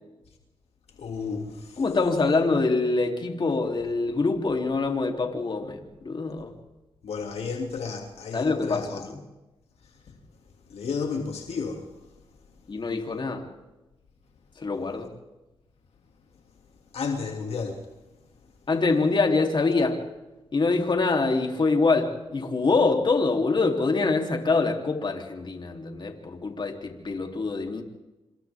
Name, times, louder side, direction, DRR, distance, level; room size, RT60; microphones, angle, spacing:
voice 1, 1.0-1.8 7.0-9.1 10.7-11.9 16.9-17.9, left 5 dB, 80° left, 2.6 m, -32 dB
voice 2, 1.8-6.5 8.3-9.2 12.7-13.5 14.6-15.1 18.7-20.0 20.5-27.8, left 3 dB, 50° left, 3.4 m, -25 dB
27.5 x 26.5 x 3.7 m
cardioid pair, 65°, 10 cm